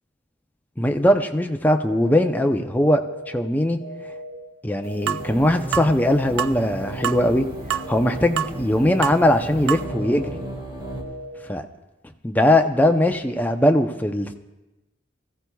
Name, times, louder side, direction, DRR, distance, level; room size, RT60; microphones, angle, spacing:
voice 1, 0.8-3.0 3.3-3.8 4.6-7.5 7.7-10.4 11.5-11.7 12.2-14.3, left 1 dB, 10° left, 5 dB, 0.6 m, -20 dB
sound 1, 1.8-2.3 2.8-3.3 3.8-4.3 4.8-5.3 5.8-6.3 6.8-7.3 7.8-8.3 8.8-9.3 9.8-10.3 10.8-11.3, right 1 dB, 30° left, 4.9 m, -38 dB
sound 2, 5.1-5.2 5.7-5.9 6.4-6.6 7.0-7.2 7.7-7.9 8.4-8.5 9.0-9.2 9.7-9.8, right 10 dB, 90° right, 0.4 m, -25 dB
sound 3, 5.2-11.0, right 1 dB, 20° right, 1.6 m, -34 dB
22.5 x 15.0 x 2.3 m, 1.0 s
head